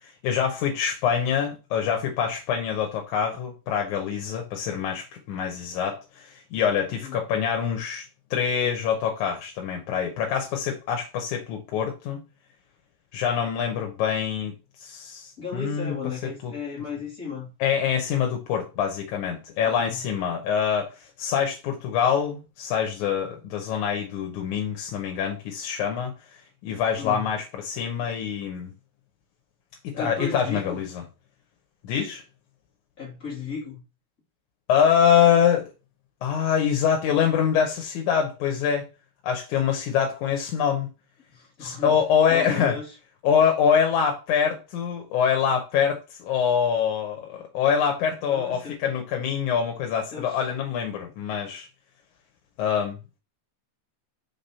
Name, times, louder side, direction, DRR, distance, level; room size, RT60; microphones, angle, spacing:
voice 1, 0.2-12.2 13.1-14.5 14.8-15.9 16.4-16.5 17.6-20.9 21.2-26.1 26.6-28.7 29.8-31.0 31.8-32.2 34.7-35.7 36.2-38.9 39.2-40.9 41.6-42.7 43.2-51.7 52.6-53.0, left 8 dB, 90° left, 2.3 m, -25 dB
voice 2, 15.4-17.5 19.6-20.0 27.0-27.3 29.9-30.8 33.0-33.8 41.3-42.0 42.3-42.9 48.3-48.8 50.1-50.4, left 5 dB, 35° left, 1.7 m, -35 dB
5.9 x 3.4 x 5.4 m
omnidirectional pair, 3.4 m